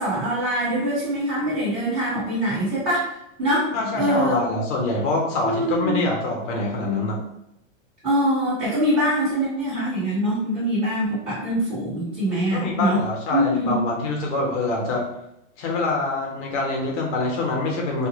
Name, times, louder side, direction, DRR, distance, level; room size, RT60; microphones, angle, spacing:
voice 1, 0.0-3.1 3.4-4.4 5.4-6.0 8.0-13.0 13.3-13.7, equal, 30° right, -9 dB, 1.2 m, -23 dB
voice 2, 3.7-7.2 12.5-15.1 15.6-18.1, left 2 dB, 65° left, 0 dB, 1.0 m, -25 dB
2.4 x 2.1 x 3.0 m, 0.84 s
hypercardioid pair, 125°, 39 cm